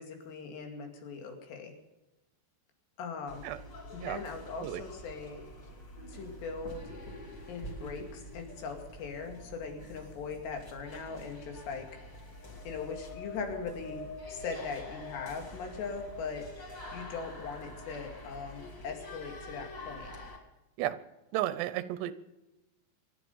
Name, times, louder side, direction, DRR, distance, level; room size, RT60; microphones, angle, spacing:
voice 1, 0.0-1.8 3.0-3.5 3.9-5.4 6.1-6.9 7.5-11.9 12.6-16.5 16.9-20.1, left 5 dB, 85° left, 4 dB, 4.6 m, -40 dB
sound 1, 3.3-20.4, left 1 dB, 30° left, 2.8 m, -47 dB
sound 2, 12.3-19.9, left 5 dB, 60° left, 3.8 m, -49 dB
voice 2, 21.3-22.1, right 14 dB, 90° right, 14 dB, 3.0 m, -33 dB
25.5 x 10.0 x 5.5 m, 1.0 s
omnidirectional pair, 4.8 m